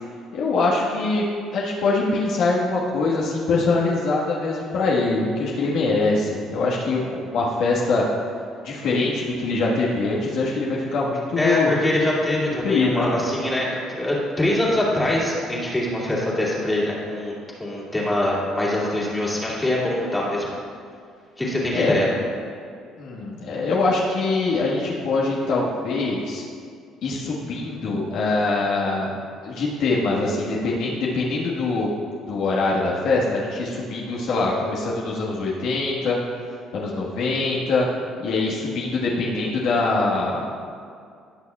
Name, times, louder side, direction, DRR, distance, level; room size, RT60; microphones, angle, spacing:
voice 1, 0.3-8.0 8.6-11.7 12.6-13.1 21.7-22.0 23.0-26.4 27.0-29.1 29.4-31.9 32.3-36.2 36.7-37.9 38.2-40.5, left 3 dB, 75° left, -5 dB, 1.5 m, -23 dB
voice 2, 11.4-17.3 17.6-20.5 21.4-22.1, left 1 dB, 15° left, -6 dB, 2.3 m, -23 dB
18.0 x 6.3 x 2.4 m, 2.3 s
cardioid pair, 115°, 0 cm